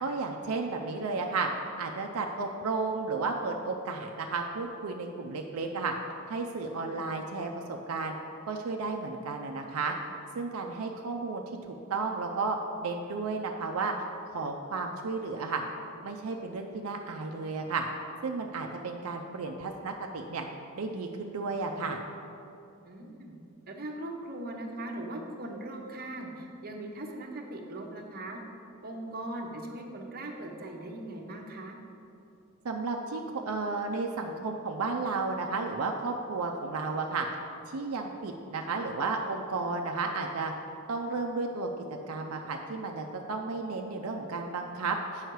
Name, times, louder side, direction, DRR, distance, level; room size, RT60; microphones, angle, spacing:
voice 1, 0.0-1.5 1.8-5.9 6.3-8.2 8.5-10.0 10.4-13.9 14.3-15.6 16.0-17.8 18.2-20.5 20.8-22.0 32.6-37.3 37.7-40.5 40.9-41.7 42.1-45.3, right 4 dB, 80° right, 2 dB, 0.5 m, -33 dB
voice 2, 22.8-23.3 23.7-28.4 28.8-31.8, right 1 dB, 45° right, 1 dB, 0.9 m, -40 dB
8.1 x 5.6 x 4.6 m, 2.7 s
head